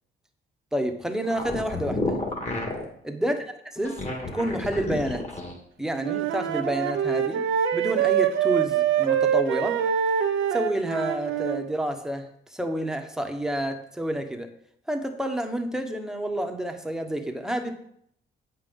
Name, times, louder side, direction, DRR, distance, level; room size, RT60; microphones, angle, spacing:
voice 1, 0.7-2.2 3.0-3.4 3.7-4.0 4.3-5.3 5.8-7.4 7.7-9.8 10.5-14.5 14.9-17.7, right 1 dB, 5° right, 5 dB, 1.2 m, -29 dB
sound 1, 1.2-2.8 3.8-5.6, left 2 dB, 35° left, 2.5 m, -30 dB
Wind instrument woodwind instrument, 6.0-11.6, right 9 dB, 85° right, 0.8 m, -24 dB
8.1 x 5.4 x 5.5 m, 0.70 s
cardioid pair, 90°, 20 cm